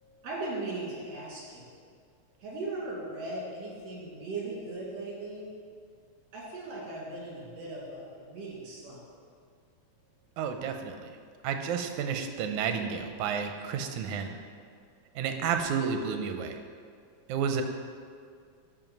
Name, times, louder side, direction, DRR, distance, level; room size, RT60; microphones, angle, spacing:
voice 1, 0.0-1.7 2.4-5.5 6.3-9.0, right 2 dB, 60° right, -6 dB, 3.3 m, -38 dB
voice 2, 10.4-11.0 11.4-14.4 15.2-16.6 17.3-17.6, right 6 dB, 85° right, 6 dB, 2.1 m, -31 dB
12.0 x 4.7 x 5.3 m, 2.1 s
omnidirectional pair, 3.4 m